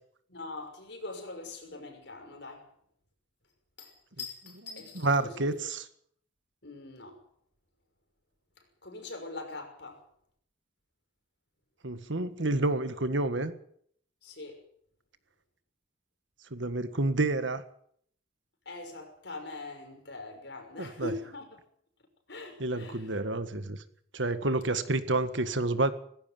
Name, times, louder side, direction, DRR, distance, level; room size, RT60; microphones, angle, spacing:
voice 1, 0.3-2.7 3.8-5.5 6.6-7.2 8.6-10.0 14.2-14.7 18.7-21.6 22.3-23.2, left 2 dB, 60° left, 6.0 m, -42 dB
voice 2, 5.0-5.8 11.8-13.5 16.5-17.6 20.8-21.1 22.6-23.8 24.1-25.9, right 2 dB, 70° right, 1.8 m, -29 dB
18.5 x 16.0 x 9.2 m
head